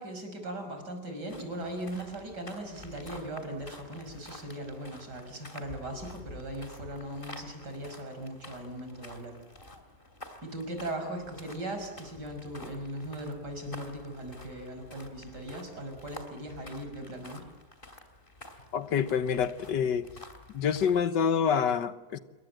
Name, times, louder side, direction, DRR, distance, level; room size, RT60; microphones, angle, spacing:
voice 1, 0.0-9.4 10.4-17.5, right 1 dB, 75° right, 5 dB, 6.1 m, -39 dB
sound 1, 1.3-21.0, left 2 dB, 30° left, 3.0 m, -50 dB
voice 2, 18.7-20.1 20.5-22.2, left 7 dB, 85° left, 12 dB, 1.8 m, -27 dB
27.5 x 23.0 x 7.8 m, 1.1 s
omnidirectional pair, 1.8 m